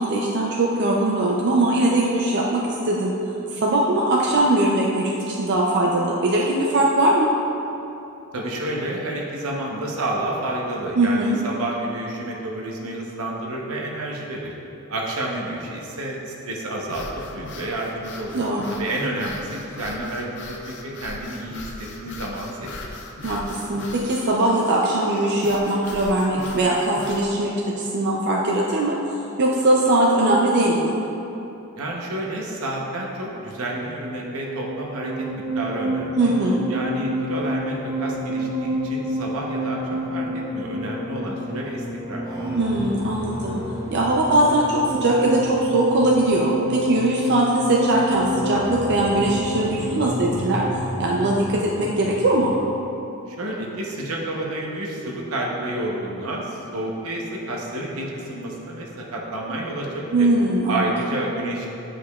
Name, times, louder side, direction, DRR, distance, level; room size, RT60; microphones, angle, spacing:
voice 1, 0.0-3.1 3.5-7.3 11.0-11.4 18.3-18.8 23.2-30.9 36.2-36.6 42.6-43.6 43.9-50.6 51.0-52.5 60.1-60.8, right 1 dB, 50° right, -3 dB, 0.4 m, -21 dB
voice 2, 8.3-14.5 14.9-17.1 17.3-18.4 18.7-20.3 20.6-22.8 31.8-35.3 35.5-36.3 36.7-42.2 53.3-60.3 60.7-61.7, right 1 dB, 80° right, -2 dB, 0.9 m, -30 dB
sound 1, 16.8-27.3, left 2 dB, 55° left, 0.5 m, -39 dB
sound 2, 34.4-52.8, equal, 15° right, 0.8 m, -29 dB
8.3 x 5.0 x 2.3 m, 3.0 s
head